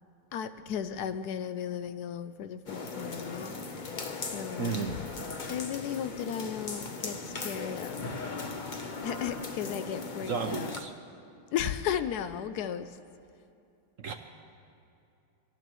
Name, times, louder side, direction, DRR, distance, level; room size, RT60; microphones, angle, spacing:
voice 1, 0.3-3.5 4.1-5.1 5.5-8.0 9.0-10.7 11.5-13.0, left 9 dB, 90° left, 11 dB, 0.8 m, -35 dB
sound 1, 2.7-10.8, left 3 dB, 60° left, 0.5 m, -38 dB
voice 2, 4.6-5.0 10.3-10.9 14.0-14.1, right 5 dB, 65° right, 5 dB, 0.8 m, -33 dB
25.0 x 18.0 x 3.1 m, 2.6 s
omnidirectional pair, 2.3 m